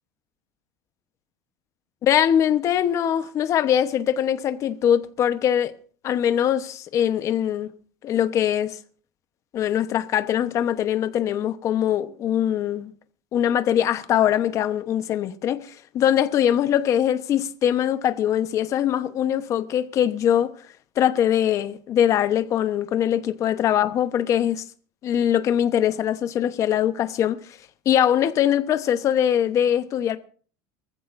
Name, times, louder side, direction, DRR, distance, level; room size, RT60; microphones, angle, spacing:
voice 1, 2.0-5.7 6.0-7.7 8.0-8.8 9.5-12.9 13.3-20.5 21.0-24.6 25.0-27.4 27.8-30.2, left 10 dB, 30° left, 1.0 m, -22 dB
24.0 x 15.0 x 2.6 m
cardioid pair, 170°, 10 cm